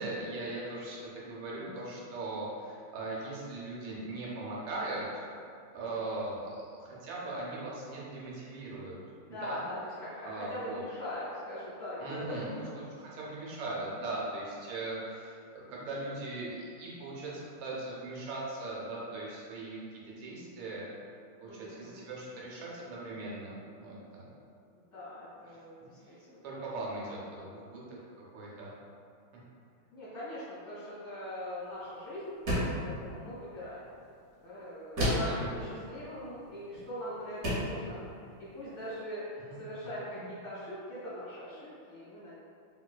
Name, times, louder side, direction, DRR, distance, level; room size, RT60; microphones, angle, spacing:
voice 1, 0.0-5.2 5.7-9.0 9.3-9.6 10.2-10.8 12.0-12.5 12.9-20.9 21.4-24.3 26.1-26.2 26.4-28.0 28.3-28.7 35.2-35.7 40.1-40.2, right 2 dB, 80° right, -5 dB, 1.5 m, -39 dB
voice 2, 9.2-12.8 21.4-22.0 24.7-26.6 29.9-32.4 32.8-33.9 34.4-42.3, equal, 25° left, -12 dB, 1.4 m, -42 dB
sound 1, 32.5-32.9 35.0-35.4 36.7-36.9 37.4-37.8, equal, 60° right, 1.0 m, -29 dB
3.2 x 3.0 x 2.2 m, 2.4 s
omnidirectional pair, 2.3 m